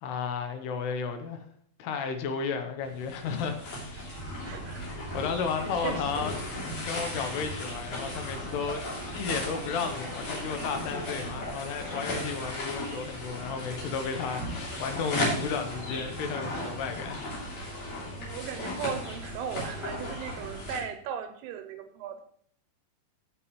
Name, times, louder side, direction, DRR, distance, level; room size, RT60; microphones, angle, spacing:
voice 1, 0.0-1.4 1.8-3.9 5.1-6.3 6.8-17.3, left 5 dB, 75° left, 6 dB, 2.9 m, -33 dB
sound 1, 2.8-20.8, left 1 dB, 50° left, 4.2 m, -36 dB
voice 2, 4.4-4.9 5.6-6.4 18.1-22.2, right 8 dB, 80° right, 7 dB, 2.7 m, -37 dB
16.0 x 6.6 x 3.2 m, 0.64 s
omnidirectional pair, 5.0 m